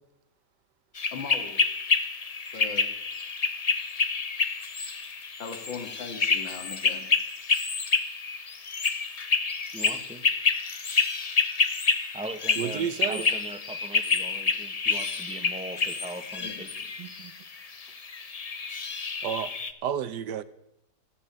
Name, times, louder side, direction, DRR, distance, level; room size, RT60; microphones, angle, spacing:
sound 1, 1.0-19.7, left 4 dB, 55° left, 0.4 m, -28 dB
voice 1, 1.1-1.6 2.5-2.9 5.4-7.1 16.4-16.9, left 5 dB, 90° left, 6 dB, 2.6 m, -39 dB
voice 2, 9.7-10.3 12.1-16.7, right 1 dB, 5° right, 7 dB, 1.1 m, -39 dB
voice 3, 12.6-13.2 17.0-17.3 19.2-19.5 19.8-20.4, right 9 dB, 70° right, 14 dB, 1.3 m, -31 dB
14.5 x 9.8 x 8.6 m, 0.83 s
omnidirectional pair, 2.0 m